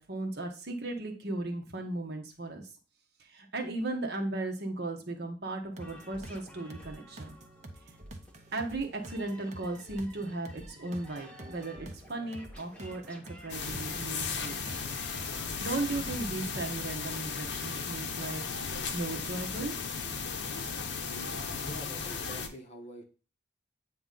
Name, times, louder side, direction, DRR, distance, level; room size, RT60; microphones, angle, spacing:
voice 1, 0.0-2.6 3.2-7.4 8.5-14.6 15.6-18.4 18.9-19.7, right 2 dB, 60° right, 3 dB, 1.1 m, -36 dB
sound 1, 5.6-16.7, right 1 dB, 40° right, 0.8 m, -48 dB
sound 2, 5.8-15.4, equal, 5° left, 1.0 m, -53 dB
sound 3, 13.5-22.5, left 5 dB, 65° left, 0.8 m, -36 dB
voice 2, 21.6-23.0, left 1 dB, 35° left, 2 dB, 1.1 m, -46 dB
8.2 x 3.0 x 3.8 m, 0.36 s
head